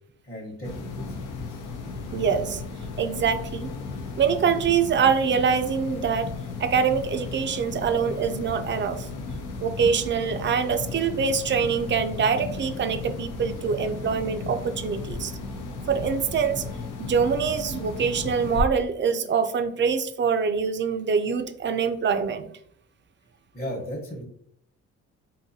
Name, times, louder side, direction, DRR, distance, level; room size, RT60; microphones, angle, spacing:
voice 1, 0.2-1.6 9.8-9.9 23.5-24.2, equal, 30° left, -5 dB, 1.1 m, -36 dB
sound 1, 0.6-18.6, left 4 dB, 80° left, 0.7 m, -35 dB
voice 2, 2.1-2.6 3.0-3.7 4.2-6.3 6.6-9.1 9.6-15.3 15.9-16.6 17.0-22.5, right 6 dB, 40° right, 8 dB, 0.4 m, -24 dB
3.9 x 2.6 x 2.7 m, 0.66 s
cardioid pair, 90°, 30 cm